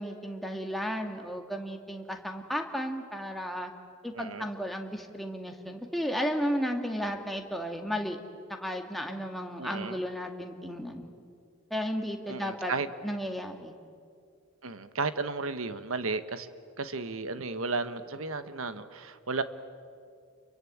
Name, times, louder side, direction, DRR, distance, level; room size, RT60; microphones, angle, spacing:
voice 1, 0.0-3.7 4.0-8.2 8.5-11.1 11.7-12.7 13.0-13.8, equal, ahead, 2 dB, 2.1 m, -34 dB
voice 2, 4.1-4.5 9.6-10.0 12.3-12.9 14.6-16.5 16.8-19.4, right 3 dB, 70° right, 11 dB, 1.3 m, -33 dB
29.5 x 23.0 x 8.7 m, 2.3 s
head